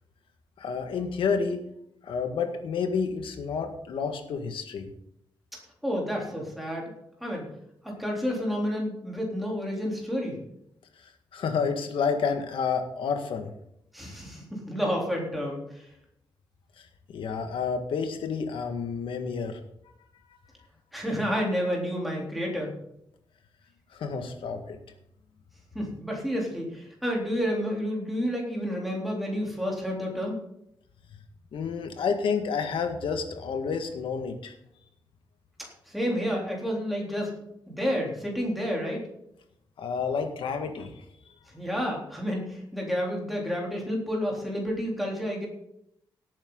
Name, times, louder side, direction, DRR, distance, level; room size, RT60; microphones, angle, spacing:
voice 1, 0.6-1.7 2.0-4.9 11.0-13.5 16.8-16.9 17.1-19.6 23.9-24.8 31.5-34.5 39.8-40.9, left 5 dB, 85° left, 6 dB, 1.9 m, -30 dB
voice 2, 5.8-6.9 7.2-7.5 7.8-10.4 13.9-15.8 20.9-22.7 25.7-30.4 35.9-37.3 37.7-39.0 41.5-45.5, equal, ahead, -2 dB, 3.6 m, -30 dB
18.0 x 8.8 x 4.0 m, 0.77 s
wide cardioid pair, 175°, 9 cm